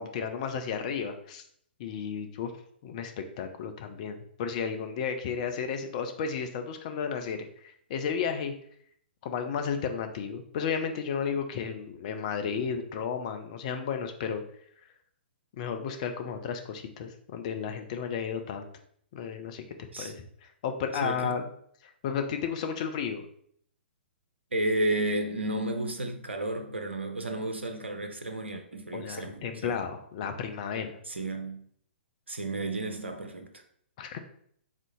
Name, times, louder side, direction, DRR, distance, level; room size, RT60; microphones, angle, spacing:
voice 1, 0.0-1.4 1.8-2.5 2.8-8.5 9.2-14.4 15.5-18.7 19.1-19.6 20.0-20.1 20.4-21.4 21.8-23.3 28.9-31.0 34.0-34.2, left 6 dB, 35° left, 0.5 m, -33 dB
voice 2, 21.0-21.5 24.5-29.8 31.1-31.6 32.3-33.5, right 1 dB, 75° right, 0.6 m, -32 dB
3.6 x 2.7 x 3.6 m
figure-of-eight pair, 120°, 6 cm